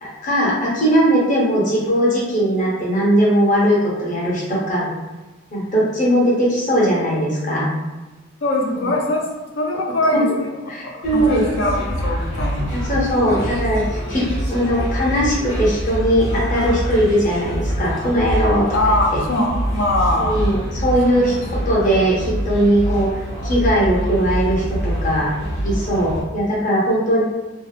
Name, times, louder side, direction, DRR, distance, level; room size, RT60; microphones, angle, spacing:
voice 1, 0.0-4.9 5.5-7.7 10.1-10.2 10.7-11.4 12.7-18.7 20.2-23.1 23.4-25.3 25.6-27.2, equal, 40° left, -6 dB, 0.8 m, -19 dB
voice 2, 8.4-9.3 9.6-10.3 10.8-12.7 18.7-20.4 21.3-21.4, left 1 dB, 65° left, 0 dB, 0.5 m, -21 dB
sound 1, 11.0-26.2, equal, 90° left, 1.2 m, -25 dB
2.7 x 2.1 x 2.3 m, 1.2 s
head